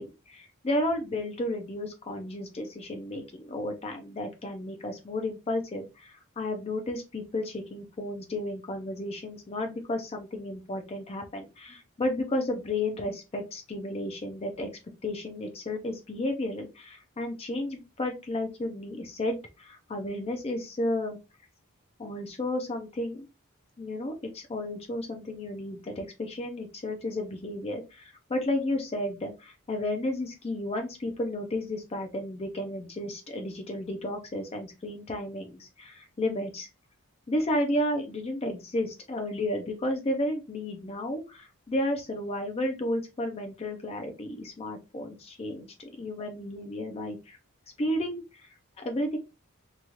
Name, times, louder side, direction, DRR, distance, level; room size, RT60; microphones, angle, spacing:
voice 1, 0.0-14.7 15.0-21.2 22.0-23.3 23.8-36.7 37.3-47.4 47.8-48.5 48.8-49.2, left 1 dB, 30° left, 4 dB, 0.4 m, -32 dB
3.0 x 2.3 x 2.7 m, 0.26 s
head